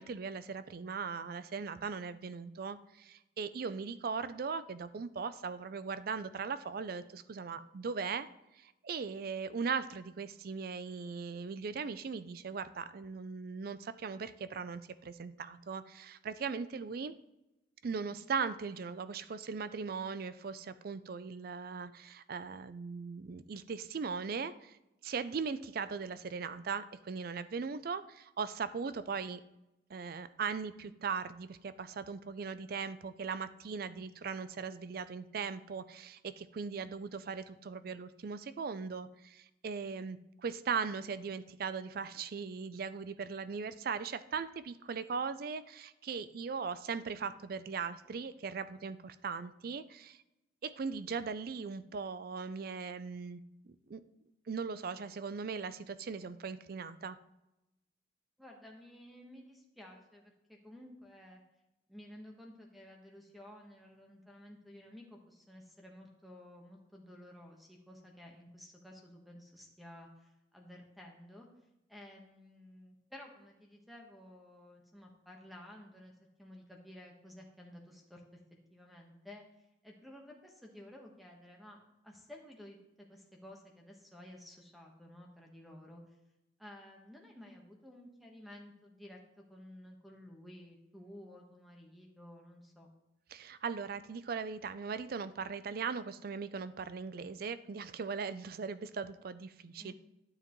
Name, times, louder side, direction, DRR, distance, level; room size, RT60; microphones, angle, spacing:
voice 1, 0.0-8.3 8.5-17.1 17.8-24.8 25.0-29.4 29.9-50.2 50.6-54.0 54.5-57.2 93.3-99.9, right 5 dB, 55° right, 14 dB, 0.4 m, -39 dB
voice 2, 58.4-61.4 61.9-71.5 71.9-76.1 76.4-78.2 78.7-79.4 79.8-86.0 86.6-92.9 99.8-99.9, left 1 dB, ahead, 0 dB, 1.2 m, -53 dB
12.0 x 7.4 x 3.1 m, 0.92 s
head